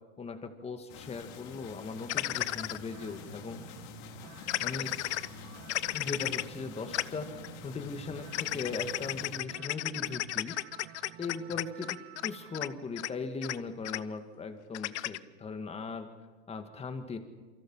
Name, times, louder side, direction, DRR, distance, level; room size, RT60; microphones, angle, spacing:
voice 1, 0.2-3.6 4.6-4.9 5.9-10.6 11.2-16.1 16.5-17.2, left 4 dB, 20° left, 8 dB, 2.1 m, -39 dB
sound 1, 0.9-9.4, left 8 dB, 50° left, 3.0 m, -48 dB
sound 2, 2.1-2.8 4.5-5.3 5.7-6.4 6.9-7.0 7.4-7.5 8.3-12.3 12.5-12.7 13.0-13.1 13.4-13.6 13.8-14.0 14.7-15.2, left 15 dB, 75° left, 0.8 m, -33 dB
sound 3, 2.3-12.8, right 17 dB, 40° right, 0.9 m, -51 dB
28.0 x 24.0 x 5.8 m, 1.3 s
hypercardioid pair, 120°, 34 cm